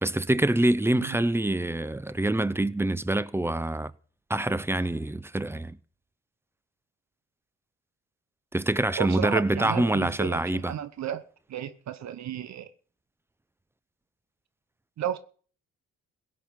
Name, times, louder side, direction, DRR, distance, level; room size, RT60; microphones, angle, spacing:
voice 1, 0.0-3.9 4.3-5.8 8.5-10.7, right 1 dB, 10° right, 0.7 m, -25 dB
voice 2, 9.0-12.7 15.0-15.2, right 10 dB, 65° right, 1.1 m, -33 dB
17.0 x 6.0 x 8.7 m
cardioid pair, 90°, 30 cm